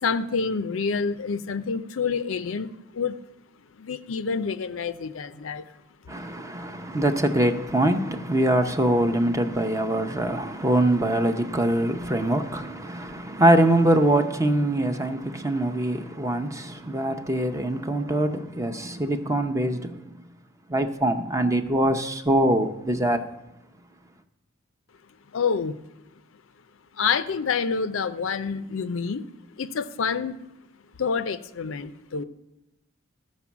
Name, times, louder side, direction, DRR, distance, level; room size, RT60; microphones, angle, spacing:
voice 1, 0.0-3.2 3.7-5.7 25.3-25.8 27.0-29.3 29.6-30.4 31.0-32.2, left 5 dB, 70° left, 0.5 m, -27 dB
voice 2, 6.1-20.2 20.7-23.3, right 1 dB, 15° right, 0.7 m, -23 dB
13.5 x 5.3 x 7.1 m
head